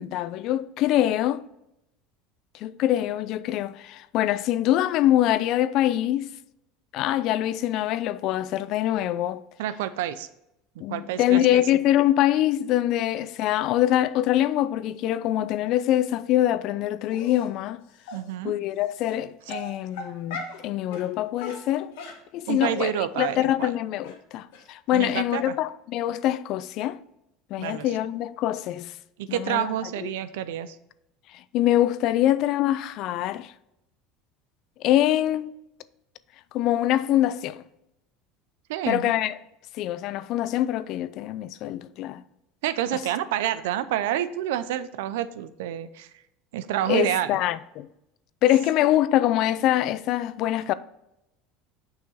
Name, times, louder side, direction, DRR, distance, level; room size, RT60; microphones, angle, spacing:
voice 1, 0.0-1.4 2.5-6.3 6.9-9.4 10.8-17.8 18.4-22.0 22.3-27.0 27.5-28.9 29.3-29.8 30.0-30.1 31.3-33.5 34.8-35.5 36.5-37.6 38.9-39.4 39.8-42.2 46.9-47.9 48.4-50.7, left 13 dB, 60° left, 0.4 m, -24 dB
voice 2, 9.6-10.3 10.9-11.6 18.1-18.6 22.5-23.7 24.9-25.5 27.6-27.9 29.2-30.8 38.7-39.1 42.6-46.1 46.5-47.4, right 11 dB, 80° right, 0.5 m, -28 dB
Dog, 17.1-17.5 18.1-18.2 19.0-19.1 19.5-20.6 20.9-21.1 21.4-22.9 23.2-23.3 23.6-23.7 24.0-24.1 24.5-24.6 25.0-25.1 25.3-25.4, left 3 dB, 80° left, 1.4 m, -38 dB
6.8 x 5.6 x 4.2 m
hypercardioid pair, 90°, 0 cm